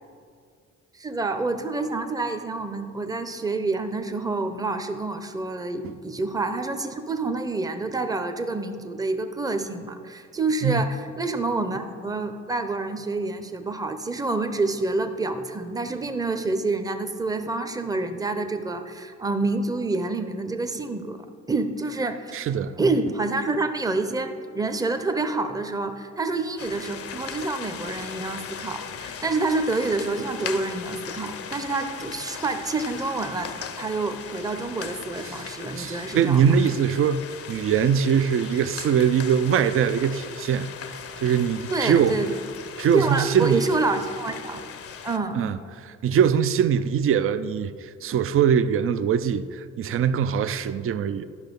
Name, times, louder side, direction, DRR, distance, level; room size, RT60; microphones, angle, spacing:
voice 1, 1.0-22.5 22.8-36.6 41.7-42.3 42.9-44.6 45.0-45.4, right 3 dB, 10° right, 7 dB, 0.7 m, -28 dB
voice 2, 22.3-22.7 35.3-35.4 35.8-37.2 37.5-40.7 41.2-42.2 42.8-43.7 45.3-51.2, right 8 dB, 45° right, 13 dB, 0.5 m, -22 dB
sound 1, 26.6-45.2, left 7 dB, 50° left, 0.7 m, -38 dB
12.5 x 5.6 x 5.3 m, 2.1 s
cardioid pair, 90°, 30 cm